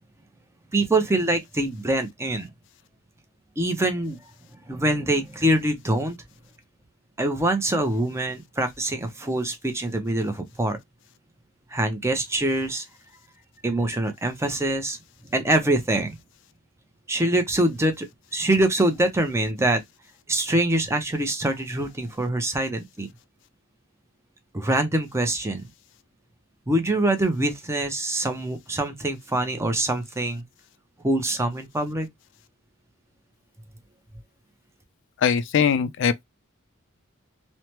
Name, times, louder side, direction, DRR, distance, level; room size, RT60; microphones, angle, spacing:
voice 1, 0.7-2.5 3.6-4.2 4.7-6.2 7.2-10.8 11.7-12.8 13.6-15.0 15.3-16.2 17.1-18.1 18.3-19.8 20.3-23.1 24.5-25.6 26.7-30.4 31.0-32.1, right 1 dB, 15° right, 0.5 m, -24 dB
voice 2, 35.2-36.2, left 7 dB, 60° left, 0.3 m, -21 dB
3.2 x 2.1 x 2.8 m
head